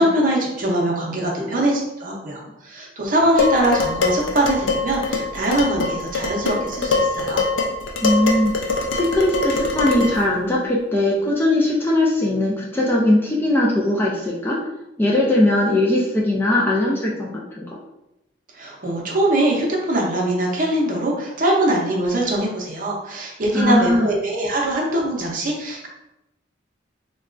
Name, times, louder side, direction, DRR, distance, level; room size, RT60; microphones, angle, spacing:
voice 1, 0.0-7.4 18.6-25.9, right 1 dB, 45° right, -1 dB, 0.7 m, -22 dB
Dishes pots and pans, 3.4-10.3, left 3 dB, 80° left, 0.5 m, -23 dB
voice 2, 8.0-8.5 8.9-14.6 15.0-17.8 23.5-24.1, left 1 dB, 10° left, -4 dB, 0.4 m, -20 dB
4.0 x 2.3 x 2.4 m, 0.90 s
head